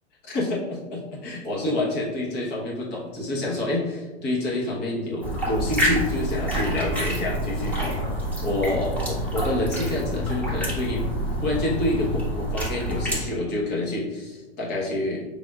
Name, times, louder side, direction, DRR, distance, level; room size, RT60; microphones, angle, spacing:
voice 1, 0.2-8.0 8.4-11.1 11.4-15.2, left 1 dB, 30° left, -4 dB, 1.1 m, -28 dB
sound 1, 5.2-13.2, equal, 5° left, 1.1 m, -27 dB
5.1 x 3.5 x 2.3 m, 1.3 s
hypercardioid pair, 115°, 35 cm